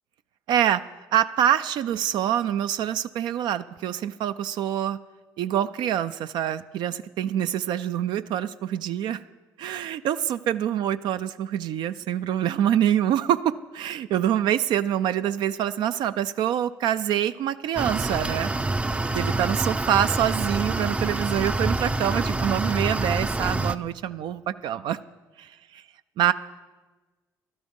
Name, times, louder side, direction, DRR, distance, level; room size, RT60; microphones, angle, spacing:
voice 1, 0.5-0.8 1.1-5.0 5.4-9.2 9.6-18.5 19.1-25.0 25.4-25.8 26.2-26.3, right 10 dB, 75° right, 11 dB, 0.4 m, -25 dB
sound 1, 17.8-23.8, right 2 dB, 15° right, 0.4 m, -26 dB
13.0 x 11.5 x 5.3 m, 1.3 s
cardioid pair, 80°, 8 cm